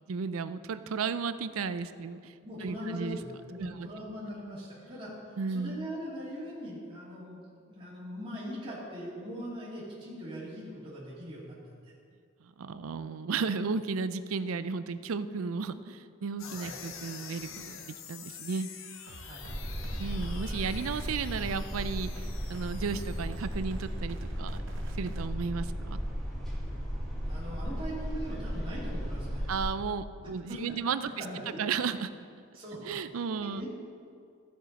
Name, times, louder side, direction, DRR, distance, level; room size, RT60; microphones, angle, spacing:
voice 1, 0.1-2.3 2.6-3.2 3.6-3.9 5.4-5.9 12.4-18.7 19.9-24.6 25.0-26.0 29.5-32.1 32.8-33.7, right 5 dB, 85° right, 13 dB, 0.5 m, -34 dB
voice 2, 2.4-11.6 11.8-11.9 16.5-16.7 19.2-19.5 27.2-29.5 30.5-30.8 31.2-31.4 32.5-32.9 33.5-33.7, equal, 25° right, -9 dB, 2.5 m, -41 dB
sound 1, 16.4-23.9, left 7 dB, 75° left, 0.8 m, -47 dB
sound 2, 19.1-25.3, right 1 dB, 65° right, 0.8 m, -47 dB
sound 3, 19.4-29.6, equal, ahead, 2.2 m, -35 dB
14.5 x 7.4 x 4.1 m, 2.4 s
head